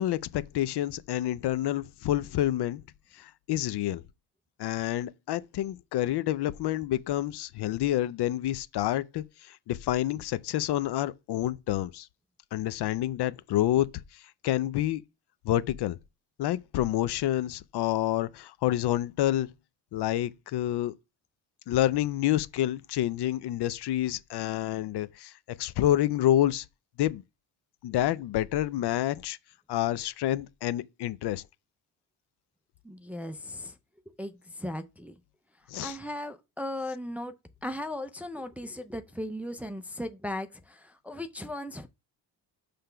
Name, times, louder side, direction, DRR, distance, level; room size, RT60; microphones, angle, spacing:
voice 1, 0.0-2.8 3.1-4.0 4.6-12.1 12.5-13.9 14.4-15.0 15.4-16.0 16.4-19.5 19.9-20.9 21.7-25.3 25.6-26.7 27.0-27.2 27.8-29.4 29.7-31.4 35.7-36.0, left 13 dB, 60° left, 0.6 m, -28 dB
voice 2, 32.8-33.8 34.2-35.1 35.8-37.3 37.6-41.9, left 1 dB, 5° right, 0.4 m, -37 dB
5.8 x 3.4 x 5.5 m
cardioid pair, 110°, 45 cm